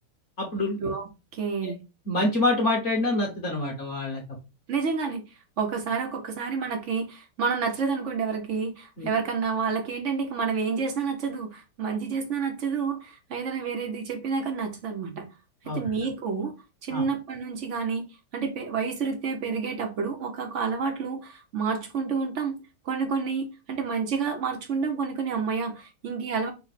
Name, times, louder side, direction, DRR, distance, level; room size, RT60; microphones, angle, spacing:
voice 1, 0.4-0.8 1.6-1.7 2.1-4.2 9.0-9.1 15.6-15.9 16.9-17.0, left 2 dB, 45° left, 1.1 m, -26 dB
voice 2, 1.3-1.8 4.7-5.2 5.6-15.3 15.7-16.5 16.8-18.0 18.3-22.6 22.8-26.5, right 5 dB, 75° right, 0.6 m, -29 dB
5.4 x 2.0 x 4.1 m
omnidirectional pair, 2.3 m